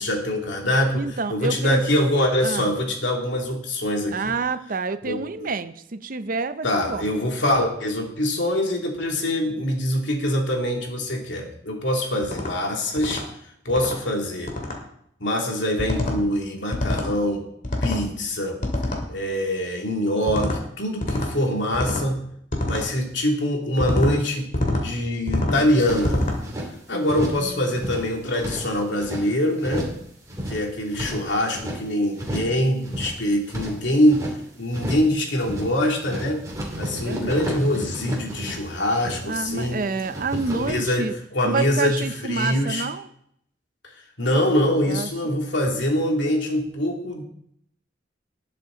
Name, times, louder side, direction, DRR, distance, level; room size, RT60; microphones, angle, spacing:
voice 1, 0.0-1.0 1.3-4.3 5.0-5.5 6.6-13.2 13.6-14.5 15.2-17.4 17.8-18.6 19.1-22.2 22.6-26.2 26.9-29.9 30.5-34.3 34.6-36.4 36.8-39.8 40.5-42.8 44.2-47.2, left 1 dB, 70° left, 1 dB, 2.6 m, -24 dB
voice 2, 0.9-1.8 2.4-2.7 4.1-7.1 26.9-27.8 36.7-37.8 39.2-41.1 41.4-43.1 44.9-45.3, right 4 dB, 45° right, 12 dB, 0.7 m, -29 dB
sound 1, 12.2-12.5 13.0-13.2 13.7-14.0 14.5-14.8 15.8-16.2 16.7-17.1 17.6-18.0 18.6-19.0 20.3-20.6 21.0-21.3 21.7-22.1 22.5-22.8 23.8-24.1 24.5-24.8 25.3-25.6 26.0-26.4, left 1 dB, 45° left, 2.3 m, -25 dB
sound 2, 25.5-26.7 27.1-27.5 27.7-29.3 29.6-30.0 30.3-31.8 32.2-32.6 32.8-34.4 34.7-35.1 35.4-35.8 36.0-39.7 40.0-40.7, equal, 20° right, 2.8 m, -32 dB
19.5 x 7.6 x 3.9 m, 0.71 s
head